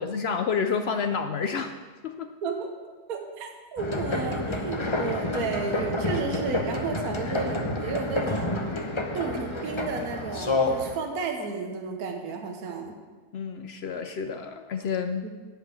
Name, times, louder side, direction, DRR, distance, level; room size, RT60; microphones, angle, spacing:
voice 1, 0.0-1.7 2.0-2.3 13.3-15.2, left 6 dB, 80° left, 7 dB, 0.5 m, -29 dB
voice 2, 3.1-8.6 9.1-12.9, right 5 dB, 60° right, 3 dB, 1.5 m, -32 dB
sound 1, 3.8-11.0, left 2 dB, 25° left, 0.7 m, -29 dB
10.5 x 5.8 x 8.2 m, 1.4 s
omnidirectional pair, 1.8 m